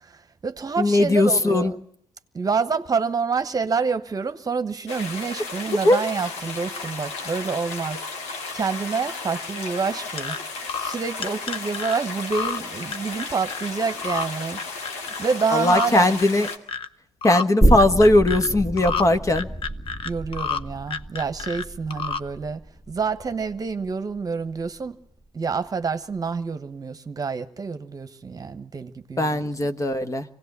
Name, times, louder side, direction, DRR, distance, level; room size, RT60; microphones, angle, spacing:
voice 1, 0.0-1.8 2.3-10.4 10.8-14.6 15.1-16.2 20.0-22.6 22.9-25.0 25.3-29.5, right 5 dB, 35° right, 1.2 m, -28 dB
voice 2, 0.8-1.7 5.8-6.0 15.5-16.5 17.2-19.5 29.2-30.2, left 1 dB, 30° left, 1.4 m, -19 dB
sound 1, 4.9-16.6, left 3 dB, 80° left, 2.2 m, -34 dB
sound 2, 10.2-10.4 10.7-11.0 11.2-12.0 12.3-12.6 12.9-13.7 14.0-14.3 14.6-15.2 15.6-15.9 16.2-16.9 17.2-17.4 17.8-18.5 18.8-19.0 19.4-20.6 20.9-21.6 21.9-22.2, left 6 dB, 55° left, 0.9 m, -29 dB
sound 3, 17.6-24.9 25.3-25.4, right 1 dB, 5° left, 1.0 m, -27 dB
24.5 x 17.5 x 8.2 m
supercardioid pair, 70°, 11 cm